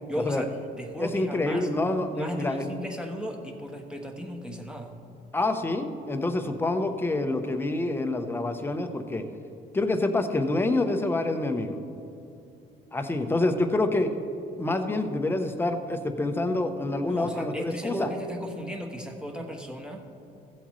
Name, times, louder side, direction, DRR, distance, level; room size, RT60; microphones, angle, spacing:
voice 1, 0.1-1.7 2.1-5.0 17.1-20.1, equal, 5° right, 2 dB, 1.2 m, -36 dB
voice 2, 1.0-2.7 5.3-9.2 9.7-11.8 12.9-14.1 14.6-18.1, left 2 dB, 15° left, 6 dB, 0.8 m, -27 dB
14.5 x 7.9 x 3.2 m, 2.7 s
cardioid pair, 110°, 17 cm